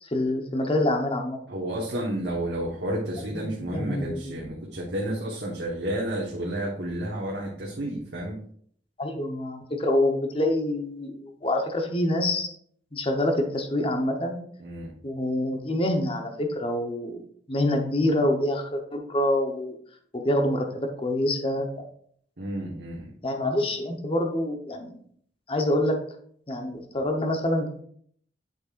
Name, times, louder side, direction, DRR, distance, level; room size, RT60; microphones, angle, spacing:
voice 1, 0.0-1.4 3.3-4.3 9.0-12.5 12.9-14.4 15.0-17.2 17.5-19.8 20.1-21.8 23.2-25.0 25.5-26.0 26.5-27.7, left 1 dB, 30° left, 3 dB, 1.0 m, -26 dB
voice 2, 1.5-8.4 14.6-14.9 22.4-23.1, right 1 dB, 70° right, -3 dB, 1.3 m, -31 dB
8.3 x 6.8 x 2.5 m, 0.62 s
head